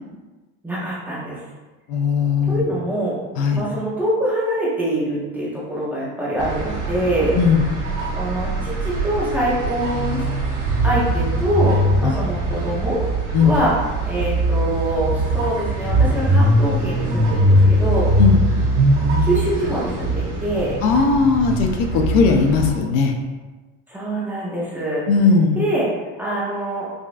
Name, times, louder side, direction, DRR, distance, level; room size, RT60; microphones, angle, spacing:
voice 1, 0.6-1.4 2.5-3.2 3.5-7.3 8.1-10.2 10.8-13.0 13.4-13.7 14.0-18.1 19.2-20.8 23.9-25.0 25.5-25.9 26.2-26.9, right 1 dB, 5° right, -8 dB, 0.5 m, -24 dB
voice 2, 1.9-2.6 3.4-3.6 7.4-7.6 12.0-12.1 13.3-13.5 18.2-18.4 20.8-23.1 25.1-25.6, left 5 dB, 80° left, 4 dB, 0.6 m, -17 dB
sound 1, 6.4-22.7, right 1 dB, 70° right, 1.5 m, -21 dB
5.0 x 2.3 x 2.5 m, 1.2 s
cardioid pair, 180°, 35 cm